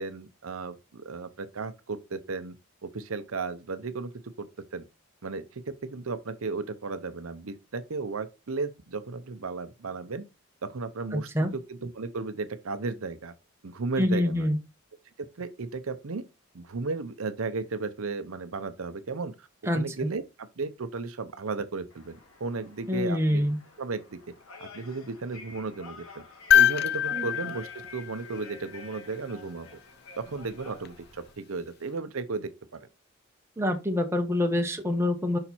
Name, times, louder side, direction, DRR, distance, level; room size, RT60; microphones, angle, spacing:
voice 1, 0.0-2.6 2.8-4.1 4.4-4.5 4.7-4.8 5.2-10.2 10.6-13.3 13.6-14.5 15.2-16.2 16.5-19.5 19.7-23.4 23.8-24.2 24.6-26.2 26.5-29.7 30.2-32.9, right 4 dB, 75° right, 0.7 m, -35 dB
voice 2, 11.1-11.5 14.0-14.6 19.7-19.8 22.9-23.6 27.1-27.3 33.6-35.4, left 1 dB, 10° right, 0.9 m, -26 dB
sound 1, 21.9-31.3, left 3 dB, 80° left, 1.7 m, -49 dB
sound 2, 26.5-28.8 30.8-30.9, left 10 dB, 50° left, 0.5 m, -24 dB
5.7 x 4.4 x 4.2 m
head